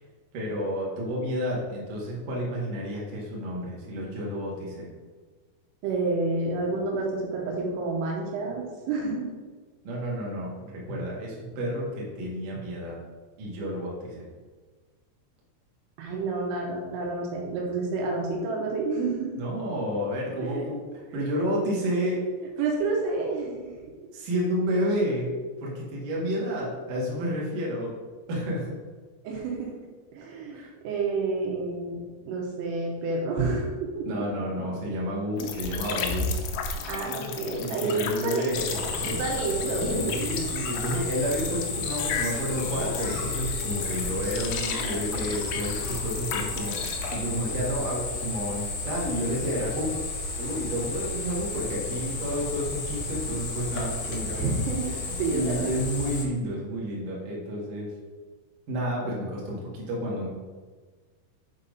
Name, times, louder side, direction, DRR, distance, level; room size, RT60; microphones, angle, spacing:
voice 1, 0.3-4.9 9.8-13.0 13.4-14.3 19.4-20.8 21.1-22.2 24.1-25.3 25.6-27.9 28.3-28.7 30.5-30.7 34.0-36.3 37.5-39.2 40.0-49.9 50.4-54.5 55.1-57.9 58.7-60.3, equal, 55° right, -4 dB, 2.8 m, -30 dB
voice 2, 5.8-9.3 16.0-19.4 20.4-20.7 22.6-23.7 29.3-29.7 30.1-34.2 36.9-38.0 38.2-38.5 39.1-40.2 54.3-55.8, right 3 dB, 85° right, -1 dB, 3.7 m, -29 dB
sound 1, 35.4-47.0, left 5 dB, 80° left, 2.6 m, -34 dB
sound 2, 38.5-56.2, left 3 dB, 65° left, 2.1 m, -33 dB
8.0 x 4.2 x 5.3 m, 1.4 s
omnidirectional pair, 5.7 m